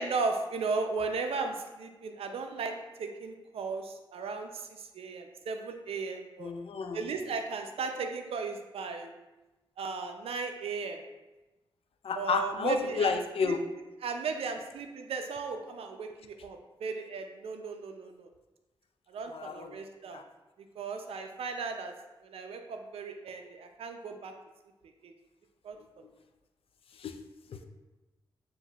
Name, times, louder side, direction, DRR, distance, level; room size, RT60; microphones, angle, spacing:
voice 1, 0.0-6.5 6.9-9.1 9.8-11.0 12.2-13.1 13.4-13.5 14.0-18.3 19.1-20.2 20.8-21.9 22.2-24.3 25.0-25.1 25.6-25.8, right 4 dB, 85° right, 5 dB, 0.4 m, -36 dB
voice 2, 6.4-7.0 12.0-13.6 19.3-19.8 20.1-20.2 27.0-27.2 27.5-27.6, left 5 dB, 75° left, 7 dB, 0.4 m, -31 dB
7.2 x 2.6 x 2.3 m, 1.1 s
cardioid pair, 55°, 10 cm